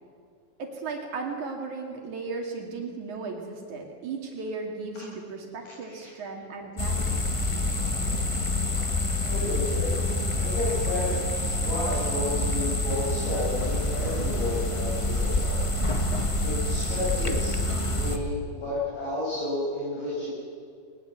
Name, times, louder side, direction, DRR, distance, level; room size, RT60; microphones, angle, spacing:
voice 1, 0.6-7.2, right 4 dB, 70° right, 1 dB, 3.6 m, -36 dB
sound 1, 6.8-18.2, left 1 dB, 55° left, 0.3 m, -27 dB
voice 2, 9.2-9.9 10.4-11.2 11.4-15.7 16.4-17.5 17.9-20.3, left 1 dB, 80° left, -8 dB, 9.3 m, -31 dB
sound 2, 10.1-16.6, left 1 dB, 10° left, 1.2 m, -44 dB
20.5 x 20.5 x 7.9 m, 2.2 s
omnidirectional pair, 3.5 m